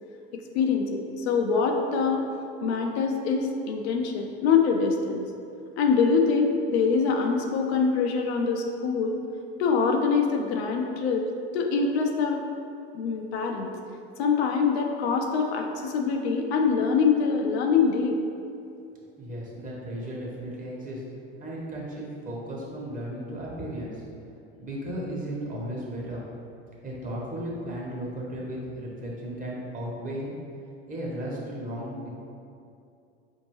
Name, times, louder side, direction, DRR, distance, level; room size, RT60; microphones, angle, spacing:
voice 1, 0.5-2.3 2.6-5.2 5.8-9.2 9.6-11.3 11.5-12.4 12.9-13.7 14.2-18.2, left 5 dB, 75° left, 3 dB, 0.5 m, -24 dB
voice 2, 19.2-21.0 21.4-23.9 24.6-26.2 26.8-30.3 30.9-32.1, right 1 dB, 25° right, -5 dB, 1.1 m, -35 dB
4.4 x 2.7 x 3.0 m, 2.6 s
hypercardioid pair, 90°, 32 cm